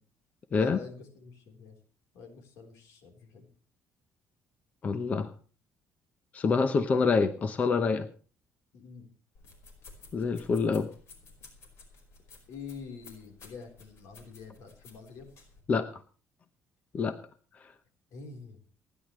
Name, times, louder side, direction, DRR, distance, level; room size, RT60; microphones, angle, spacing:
voice 1, 0.5-1.8 2.1-3.5 8.7-9.1 12.5-15.3 18.1-18.6, left 5 dB, 80° left, 5 dB, 3.9 m, -46 dB
voice 2, 4.8-5.3 6.3-8.1 10.1-10.9 15.7-16.0 16.9-17.1, left 4 dB, 30° left, 10 dB, 0.9 m, -26 dB
sound 1, 9.3-15.6, left 4 dB, 60° left, 4.9 m, -54 dB
28.0 x 10.5 x 3.2 m, 0.38 s
cardioid pair, 170°, 5 cm